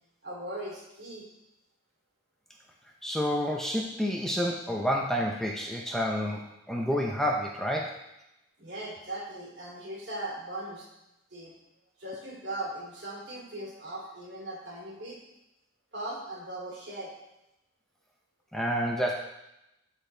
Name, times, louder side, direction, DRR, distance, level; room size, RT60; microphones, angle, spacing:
voice 1, 0.2-1.2 8.6-10.9 11.3-11.5 12.0-15.2 15.9-17.1, right 1 dB, 65° right, -5 dB, 3.0 m, -39 dB
voice 2, 3.0-6.4 6.7-8.0 18.5-19.1, equal, ahead, -1 dB, 0.6 m, -29 dB
13.5 x 4.4 x 3.3 m, 0.89 s
head